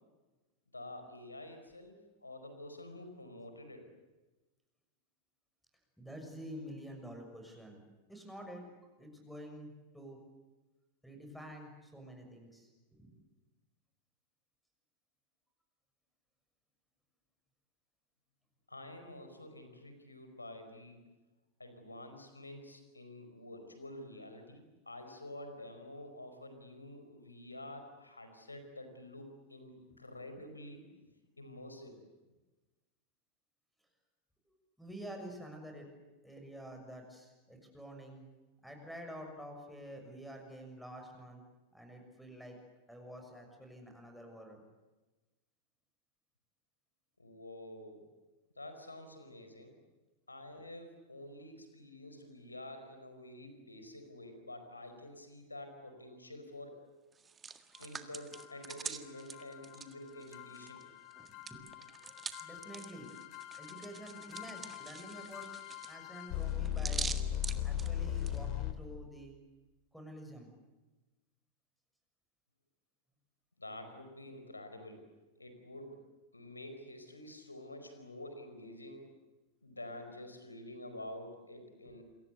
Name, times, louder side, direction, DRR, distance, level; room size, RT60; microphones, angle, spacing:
voice 1, 0.7-3.8 18.7-21.0 21.6-30.9 31.4-31.9 47.2-48.0 48.6-49.7 50.3-56.8 57.8-60.8 73.6-75.0 75.4-76.0 76.3-79.1 79.6-82.0, left 1 dB, 80° left, 7 dB, 4.8 m, -49 dB
voice 2, 6.0-7.8 8.1-8.7 9.0-10.2 11.0-13.1 34.5-35.9 36.2-38.3 38.6-41.4 41.7-42.6 42.9-44.6 50.6-50.7 61.3-63.1 63.6-65.5 65.9-67.1 67.6-69.3 69.9-70.5 81.8-82.0, equal, ahead, 3 dB, 6.6 m, -49 dB
Hands, 57.1-60.8 61.1-68.4, right 6 dB, 20° right, 1.7 m, -45 dB
sound 1, 58.3-68.7, left 10 dB, 40° left, 2.4 m, -40 dB
28.0 x 23.0 x 8.2 m, 1.2 s
figure-of-eight pair, 90°, 0 cm